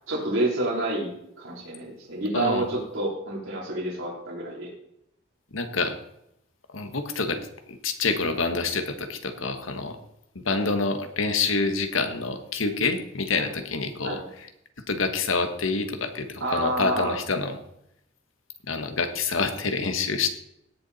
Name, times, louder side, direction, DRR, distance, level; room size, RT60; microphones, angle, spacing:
voice 1, 0.1-1.1 1.4-4.7 10.5-10.7 13.4-13.5 14.0-14.2 16.4-17.2, right 2 dB, 85° right, -5 dB, 3.7 m, -29 dB
voice 2, 2.3-2.7 5.5-5.9 6.7-7.4 7.7-10.0 10.3-14.2 14.9-17.6 18.7-20.3, left 4 dB, 90° left, 8 dB, 1.5 m, -27 dB
17.5 x 7.1 x 4.2 m, 0.77 s
head